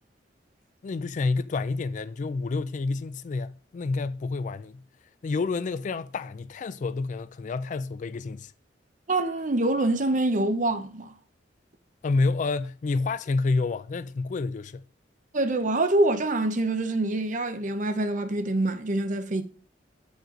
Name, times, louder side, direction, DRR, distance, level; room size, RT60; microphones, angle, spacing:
voice 1, 0.8-4.8 5.2-8.5 12.0-14.8, left 3 dB, 45° left, 0.3 m, -29 dB
voice 2, 9.1-11.1 15.3-19.4, right 2 dB, 45° right, 0.8 m, -25 dB
7.7 x 5.2 x 3.8 m
head